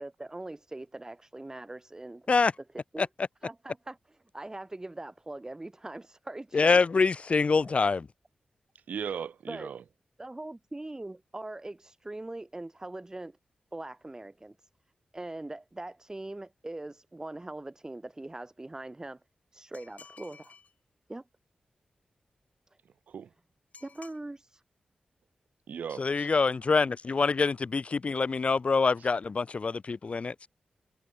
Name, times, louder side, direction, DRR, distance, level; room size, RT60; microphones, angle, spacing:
voice 1, 0.0-2.3 2.9-3.1 3.4-6.8 7.6-7.7 9.5-9.7 10.2-13.4 13.7-14.7 15.1-19.2 19.5-20.5 21.1-21.2 23.8-24.6, right 2 dB, 25° right, 3.8 m, -41 dB
voice 2, 6.5-8.1 26.0-30.5, left 4 dB, 50° left, 0.6 m, -25 dB
voice 3, 8.9-9.8 23.1-23.3 25.7-26.3, right 7 dB, 85° right, 1.9 m, -37 dB
sound 1, 19.7-20.7 23.7-24.2, left 5 dB, 70° left, 3.7 m, -53 dB
cardioid pair, 55°, 3 cm